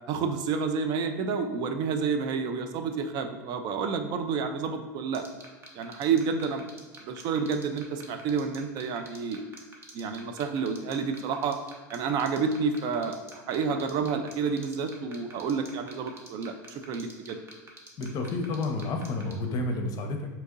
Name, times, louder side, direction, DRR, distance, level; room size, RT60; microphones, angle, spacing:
voice 1, 0.1-5.2 5.8-6.6 7.0-9.4 9.9-11.6 11.9-17.4, right 5 dB, 45° right, 7 dB, 0.4 m, -29 dB
sound 1, 5.1-19.3, right 3 dB, 25° right, 0.7 m, -46 dB
voice 2, 18.0-20.3, left 2 dB, 40° left, 3 dB, 0.6 m, -30 dB
2.8 x 2.6 x 3.6 m, 1.4 s
hypercardioid pair, 100°, 10 cm